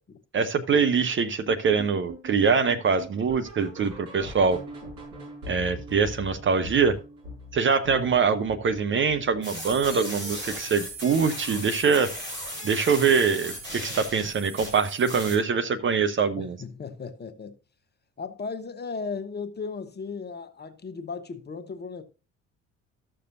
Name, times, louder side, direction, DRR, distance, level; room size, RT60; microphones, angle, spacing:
voice 1, 0.3-4.6 5.5-7.0 7.5-12.1 12.6-16.6, right 5 dB, 30° right, 0.8 m, -24 dB
sound 1, 1.5-10.6 10.9-11.2 11.5-11.6 12.1-12.2 12.7-12.8, equal, 55° right, 5.7 m, -43 dB
sound 2, 9.4-15.3, equal, 85° right, 4.3 m, -37 dB
voice 2, 16.4-17.6 18.2-22.0, left 5 dB, 25° left, 1.1 m, -36 dB
13.5 x 6.7 x 2.6 m
figure-of-eight pair, 50°, 38 cm